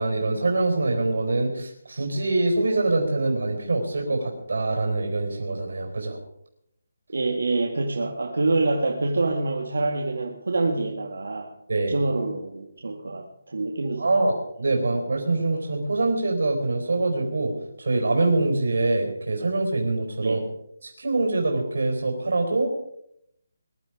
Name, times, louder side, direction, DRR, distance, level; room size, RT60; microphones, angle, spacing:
voice 1, 0.0-6.2 11.7-12.0 14.0-17.5 17.8-20.5 20.8-22.8, right 2 dB, 70° right, 2 dB, 4.1 m, -24 dB
voice 2, 7.1-11.5 11.9-14.1 20.2-20.4, right 2 dB, 90° right, 1 dB, 2.1 m, -26 dB
21.5 x 11.5 x 5.1 m, 0.75 s
hypercardioid pair, 180°, 0 cm